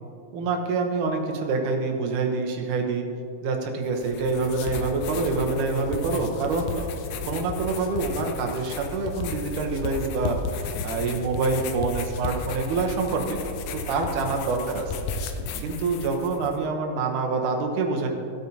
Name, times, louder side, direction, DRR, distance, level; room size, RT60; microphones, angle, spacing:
voice 1, 0.3-3.1 3.4-7.0 7.3-13.4 13.7-15.1 15.6-18.1, right 3 dB, 80° right, 3 dB, 2.5 m, -26 dB
sound 1, 3.9-16.6, left 4 dB, 85° left, 2.1 m, -34 dB
15.5 x 8.2 x 2.8 m, 2.4 s
omnidirectional pair, 3.6 m